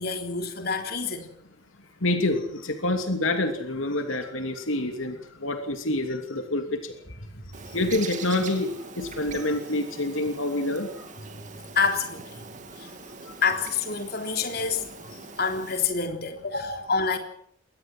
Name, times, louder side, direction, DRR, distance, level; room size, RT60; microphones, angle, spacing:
voice 1, 0.0-1.3 7.3-7.5 11.7-12.4 12.8-12.9 13.4-14.9 15.4-17.2, left 5 dB, 50° left, 4 dB, 3.6 m, -27 dB
voice 2, 2.0-6.8 7.7-10.9, left 2 dB, 80° left, 6 dB, 2.9 m, -27 dB
Bird, 7.5-15.9, right 4 dB, 35° right, 2.5 m, -43 dB
23.0 x 19.5 x 6.2 m, 0.64 s
head